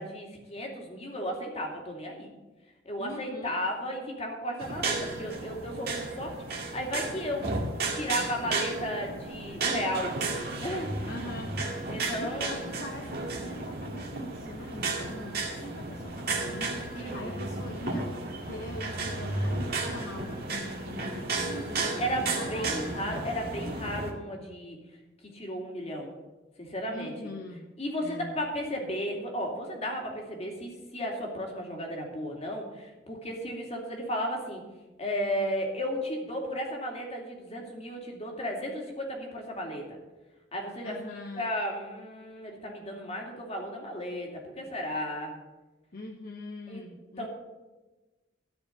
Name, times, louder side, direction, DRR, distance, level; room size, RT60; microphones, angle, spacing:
voice 1, 0.0-2.3 2.8-7.4 7.9-10.1 10.6-11.1 11.9-12.6 16.9-17.5 21.8-24.8 25.3-26.1 26.6-27.1 27.8-34.6 35.0-39.8 40.5-41.0 41.4-45.3 46.7-46.8 47.2-47.3, equal, 35° left, 1 dB, 2.6 m, -34 dB
voice 2, 3.0-3.6 7.4-8.0 11.0-11.6 12.0-16.7 17.1-18.1 18.4-23.0 26.9-28.4 40.8-41.5 45.9-47.3, left 1 dB, 55° left, 2 dB, 1.0 m, -43 dB
sound 1, 4.6-24.1, right 3 dB, 60° right, 2.0 m, -33 dB
13.5 x 5.1 x 9.1 m, 1.2 s
head